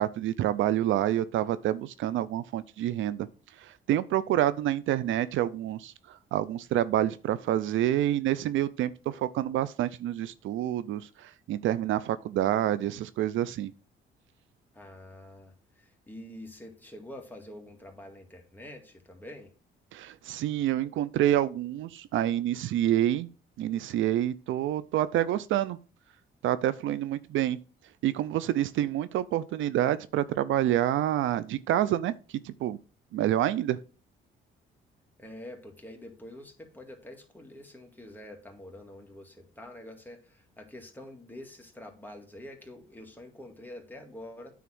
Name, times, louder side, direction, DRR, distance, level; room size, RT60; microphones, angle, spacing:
voice 1, 0.0-3.3 3.6-13.7 19.9-23.3 23.6-25.8 26.4-27.6 28.0-32.1 32.4-32.8 33.1-33.8, right 12 dB, 75° right, 0.5 m, -28 dB
voice 2, 14.7-19.5 35.2-44.6, left 1 dB, 10° left, 2.1 m, -46 dB
9.2 x 3.6 x 6.0 m
cardioid pair, 90°, 20 cm